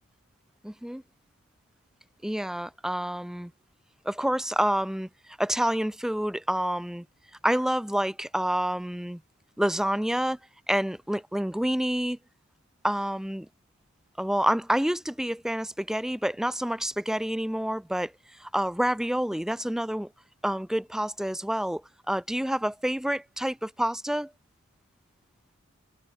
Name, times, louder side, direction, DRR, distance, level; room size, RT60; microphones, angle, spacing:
voice 1, 0.6-1.0 2.2-3.5 4.1-5.1 5.4-7.1 7.4-9.2 9.6-10.4 10.7-12.2 12.8-13.5 14.2-18.1 18.4-20.1 20.4-24.3, equal, ahead, 0.5 m, -28 dB
head